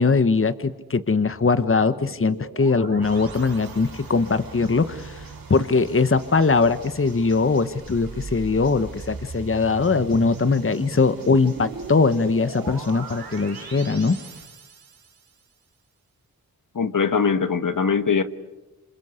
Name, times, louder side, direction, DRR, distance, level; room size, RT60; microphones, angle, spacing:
voice 1, 0.0-5.2 5.5-14.2, left 4 dB, 35° left, 13 dB, 1.3 m, -21 dB
sound 1, 1.2-4.3 7.7-15.3, right 4 dB, 90° right, 3.4 m, -39 dB
sound 2, 3.0-14.5, right 4 dB, 70° right, 4.4 m, -44 dB
voice 2, 16.7-18.2, left 5 dB, 60° left, 11 dB, 1.5 m, -21 dB
27.0 x 27.0 x 8.2 m, 1.0 s
cardioid pair, 45°, 36 cm